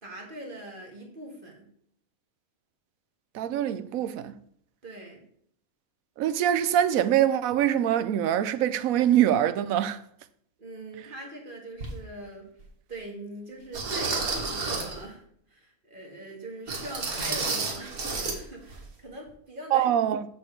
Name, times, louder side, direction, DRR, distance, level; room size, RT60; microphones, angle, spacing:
voice 1, 0.0-1.7 4.8-5.2 10.6-12.5 12.9-19.9, right 1 dB, 35° right, 2.0 m, -42 dB
voice 2, 3.3-4.3 6.2-10.0 19.7-20.2, right 10 dB, 75° right, 1.0 m, -24 dB
sound 1, 11.8-11.9 12.6-12.7 13.7-15.0 16.7-18.4 18.7-18.8 19.3-19.4, right 3 dB, 90° right, 2.0 m, -31 dB
7.2 x 6.8 x 4.6 m
omnidirectional pair, 1.5 m